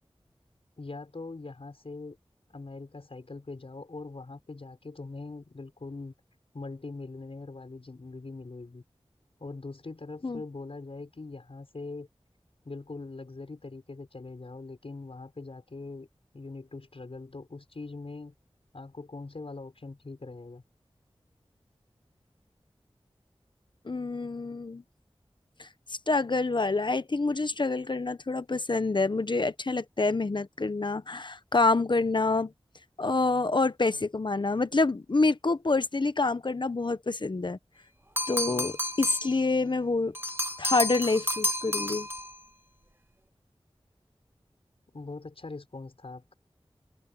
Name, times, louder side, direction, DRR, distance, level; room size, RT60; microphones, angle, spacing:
voice 1, 0.8-2.2 2.5-6.1 6.5-8.8 9.4-12.1 12.6-16.1 16.3-18.3 18.7-20.6 44.9-46.3, left 3 dB, 70° left, 6.6 m, -42 dB
voice 2, 23.8-24.8 25.6-25.7 26.1-32.5 33.0-37.6 38.3-40.1 40.6-42.1, left 3 dB, 50° left, 1.0 m, -27 dB
sound 1, 38.2-39.4 40.1-42.3, left 1 dB, 25° right, 1.8 m, -31 dB
wide cardioid pair, 70°, 10 cm